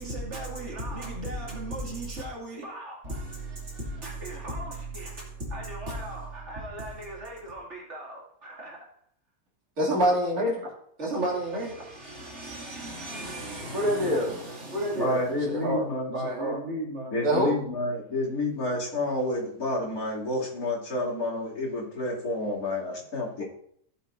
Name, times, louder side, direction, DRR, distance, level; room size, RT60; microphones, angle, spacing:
voice 1, 0.0-8.9 11.0-15.6 16.1-17.3, right 1 dB, 45° right, 2.5 m, -35 dB
voice 2, 9.8-10.6 13.7-14.3 15.5-15.8 17.2-17.6 23.4-23.5, equal, 65° right, 3.0 m, -24 dB
voice 3, 14.9-16.3 17.1-23.4, left 2 dB, 65° left, 3.0 m, -29 dB
16.0 x 7.4 x 2.6 m
omnidirectional pair, 1.7 m